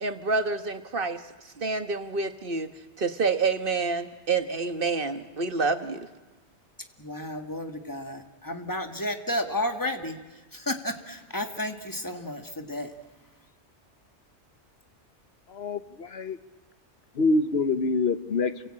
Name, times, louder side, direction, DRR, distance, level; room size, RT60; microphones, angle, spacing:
voice 1, 0.0-1.2 1.6-2.7 3.0-6.1, right 4 dB, 50° right, 9 dB, 1.5 m, -28 dB
voice 2, 7.0-10.2 10.5-12.9, left 1 dB, 15° left, 5 dB, 1.8 m, -32 dB
voice 3, 15.5-16.4 17.1-18.7, left 3 dB, 60° left, 11 dB, 1.3 m, -26 dB
29.5 x 23.0 x 8.9 m, 1.2 s
omnidirectional pair, 1.2 m